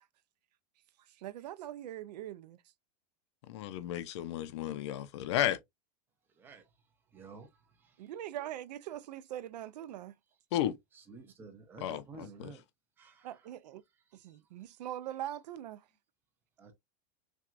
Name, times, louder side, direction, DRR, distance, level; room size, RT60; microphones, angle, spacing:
voice 1, 1.2-2.6 8.0-10.1 13.2-13.8 14.1-15.8, right 12 dB, 75° right, 0.5 m, -42 dB
voice 2, 3.5-5.6 10.5-10.8 11.8-12.5, left 12 dB, 45° left, 0.5 m, -33 dB
voice 3, 6.3-6.7 7.1-8.6 8.8-8.9 10.9-12.6 13.0-13.6 13.9-14.4 16.6-16.7, right 4 dB, 10° right, 0.5 m, -53 dB
5.9 x 2.3 x 2.4 m
supercardioid pair, 180°, 21 cm